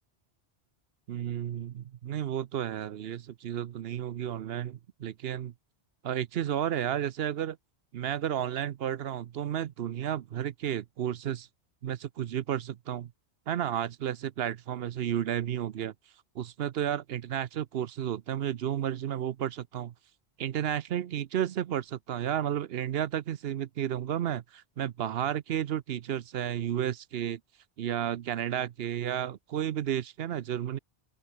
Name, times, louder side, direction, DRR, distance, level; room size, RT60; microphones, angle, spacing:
voice 1, 1.1-5.5 6.0-7.6 7.9-11.5 11.8-13.1 13.5-15.9 16.3-19.9 20.4-27.4 27.8-30.8, right 10 dB, 70° right, 0.9 m, -32 dB
open air
omnidirectional pair, 1.1 m